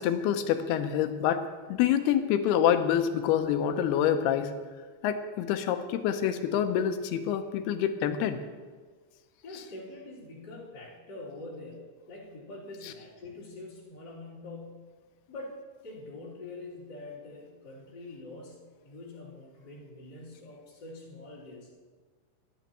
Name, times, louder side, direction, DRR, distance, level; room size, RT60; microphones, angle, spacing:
voice 1, 0.0-4.5 5.0-8.4, left 9 dB, 80° left, 8 dB, 2.6 m, -27 dB
voice 2, 9.4-14.9 15.3-15.6 15.8-21.7, left 2 dB, 25° left, -9 dB, 3.4 m, -45 dB
27.5 x 9.4 x 3.0 m, 1.5 s
omnidirectional pair, 4.8 m